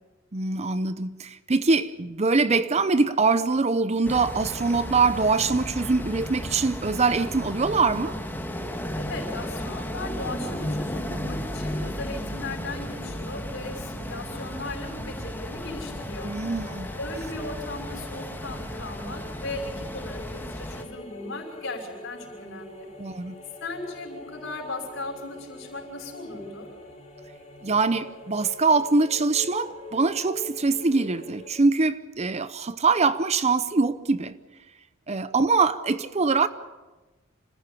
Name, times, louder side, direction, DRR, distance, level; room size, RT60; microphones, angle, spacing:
voice 1, 0.3-8.1 16.2-16.9 23.0-23.4 27.6-34.4 35.1-36.5, right 4 dB, 35° right, 0.7 m, -23 dB
sound 1, 4.0-20.8, equal, 10° left, 1.7 m, -34 dB
voice 2, 9.0-16.3 17.0-22.9 23.6-26.7, left 2 dB, 65° left, 6.0 m, -37 dB
sound 2, 15.4-31.5, left 2 dB, 35° left, 4.3 m, -44 dB
26.5 x 15.0 x 8.5 m
head